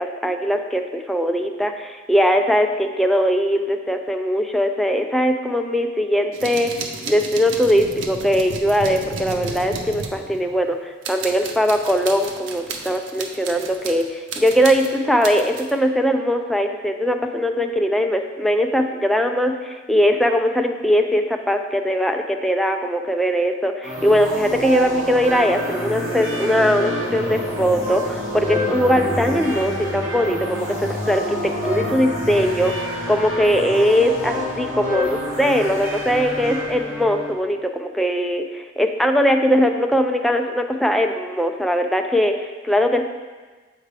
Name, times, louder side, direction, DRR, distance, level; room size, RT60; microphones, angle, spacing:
voice 1, 0.0-6.7 7.1-43.1, equal, ahead, 4 dB, 0.3 m, -20 dB
sound 1, 6.3-10.7 11.0-14.0 14.3-15.7, right 4 dB, 90° right, 0.7 m, -32 dB
sound 2, 23.8-37.3, left 1 dB, 15° right, 1.3 m, -28 dB
sound 3, 24.0-33.6, equal, 55° right, 0.7 m, -33 dB
7.6 x 4.6 x 3.3 m, 1.3 s
head